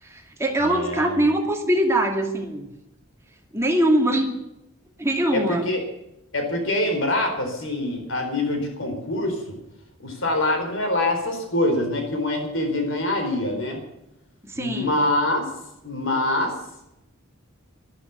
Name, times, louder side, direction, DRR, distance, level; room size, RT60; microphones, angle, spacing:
voice 1, 0.0-2.7 3.5-4.3 5.0-5.7 14.4-15.1, right 1 dB, 15° right, 2 dB, 2.5 m, -22 dB
voice 2, 0.6-1.2 5.3-5.8 6.3-9.6 10.0-13.8 14.5-15.5 15.8-16.5, left 1 dB, 65° left, 4 dB, 4.5 m, -25 dB
13.5 x 13.0 x 8.3 m, 0.87 s
head